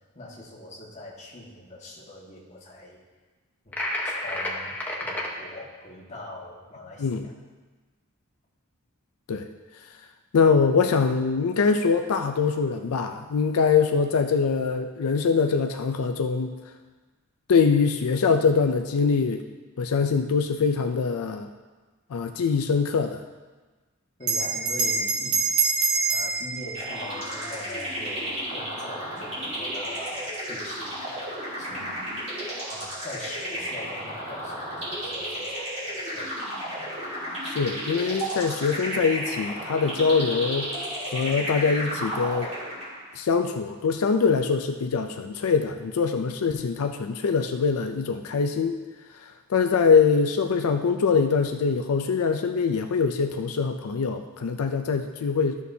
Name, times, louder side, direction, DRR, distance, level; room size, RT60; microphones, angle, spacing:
voice 1, 0.1-3.0 3.6-4.7 5.0-7.3 24.2-25.4 26.1-32.1 32.7-36.3, left 1 dB, 30° left, -4 dB, 1.6 m, -42 dB
sound 1, 3.7-5.3, left 1 dB, 10° left, 1.0 m, -30 dB
voice 2, 10.3-16.5 17.5-19.4 19.8-21.5 22.1-23.2 37.4-40.7 41.1-42.5 43.2-48.7 49.5-55.6, left 5 dB, 90° left, 6 dB, 0.4 m, -23 dB
Bell, 24.2-29.1, right 4 dB, 85° right, 1.1 m, -27 dB
sound 2, 26.7-43.1, equal, 30° right, 2.7 m, -33 dB
12.5 x 6.4 x 2.7 m, 1.3 s
head